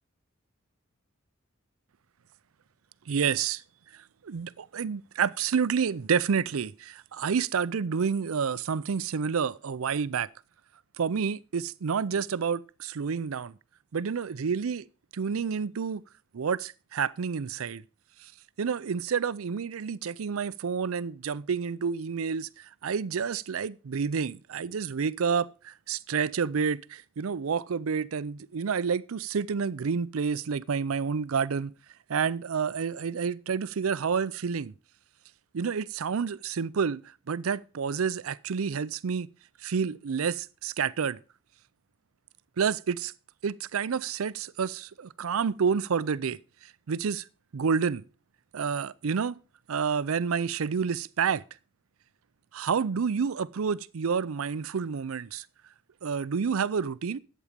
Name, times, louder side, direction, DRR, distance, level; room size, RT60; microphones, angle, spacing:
voice 1, 3.1-3.6 3.9-10.3 11.0-13.5 13.9-14.9 15.1-16.0 16.3-17.8 18.2-18.3 18.6-31.7 32.1-34.7 35.5-39.3 39.6-41.2 42.6-43.1 43.4-46.4 46.9-47.2 47.5-48.0 48.5-49.4 49.7-51.4 52.5-55.5 56.0-57.2, right 6 dB, 75° right, 0.5 m, -29 dB
11.5 x 8.5 x 5.1 m
head